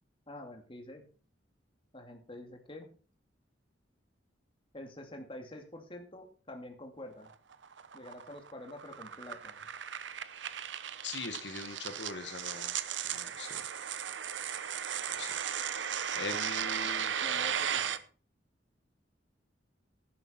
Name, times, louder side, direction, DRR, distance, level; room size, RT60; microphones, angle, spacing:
voice 1, 0.3-1.1 1.9-2.9 4.7-7.3 7.9-9.7 17.2-18.0, left 1 dB, 30° left, 4 dB, 2.4 m, -47 dB
sound 1, 7.3-18.0, right 8 dB, 85° right, 0.9 m, -36 dB
voice 2, 11.0-12.7 13.1-13.6 15.2-15.4 16.1-17.1, left 4 dB, 70° left, 7 dB, 1.4 m, -41 dB
11.0 x 10.5 x 4.4 m, 0.39 s
head